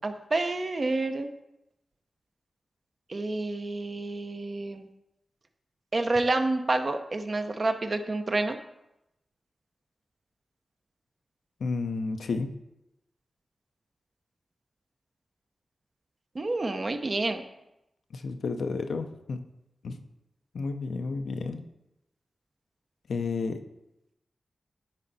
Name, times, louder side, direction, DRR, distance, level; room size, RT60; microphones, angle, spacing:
voice 1, 0.0-1.3 3.1-4.9 5.9-8.6 16.3-17.4, right 2 dB, 50° right, 7 dB, 0.7 m, -28 dB
voice 2, 11.6-12.5 18.1-19.4 19.8-20.0 20.5-21.6 23.1-23.6, left 4 dB, 85° left, 6 dB, 0.6 m, -31 dB
9.8 x 4.4 x 4.0 m, 0.89 s
cardioid pair, 50°, 0 cm